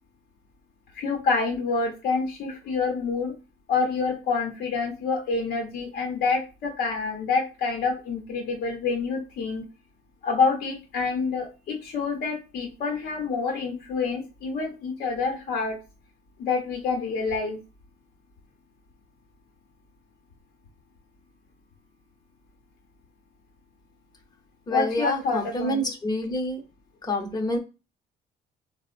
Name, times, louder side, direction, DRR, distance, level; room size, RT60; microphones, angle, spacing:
voice 1, 0.9-3.3 3.7-9.6 10.2-15.8 16.4-17.6 24.7-25.9, left 4 dB, 65° left, 0.8 m, -27 dB
voice 2, 24.7-26.6 27.0-27.6, left 1 dB, 25° left, 0.7 m, -28 dB
3.6 x 2.1 x 2.4 m
cardioid pair, 110°, 17 cm